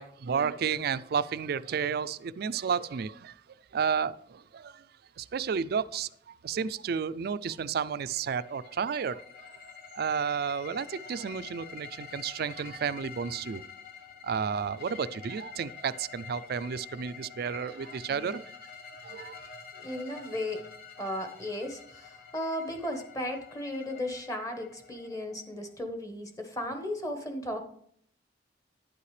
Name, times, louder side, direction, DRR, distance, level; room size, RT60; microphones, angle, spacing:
voice 1, 0.0-3.4 3.7-4.9 5.2-9.5 9.9-13.6 14.2-18.5 19.0-19.5, right 6 dB, 60° right, 0.4 m, -32 dB
sound 1, 7.9-25.7, left 6 dB, 60° left, 1.4 m, -48 dB
voice 2, 19.7-20.7 21.0-27.7, left 1 dB, 20° left, 1.2 m, -35 dB
10.5 x 8.4 x 3.3 m
head